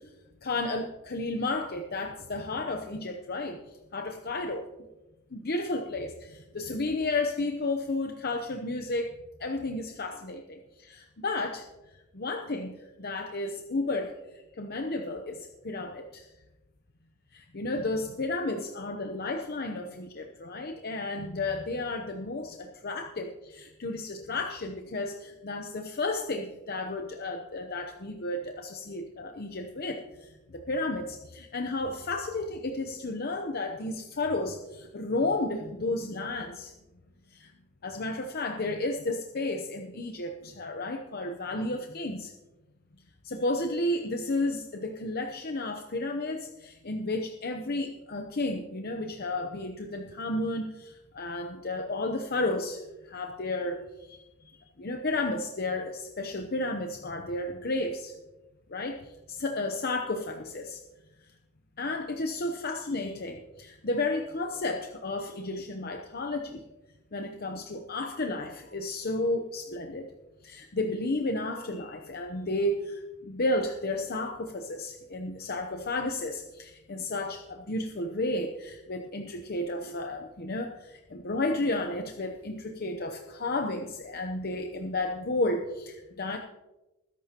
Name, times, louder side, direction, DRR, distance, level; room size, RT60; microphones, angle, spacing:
voice 1, 0.4-4.7 5.3-9.1 9.4-11.7 12.1-12.7 13.0-16.3 17.3-36.7 37.3-37.5 37.8-42.3 43.2-54.2 54.5-58.1 58.7-60.8 61.8-66.6 67.1-70.1 70.4-86.4, left 2 dB, 45° left, 4 dB, 0.8 m, -32 dB
20.0 x 11.0 x 2.9 m, 1.1 s
head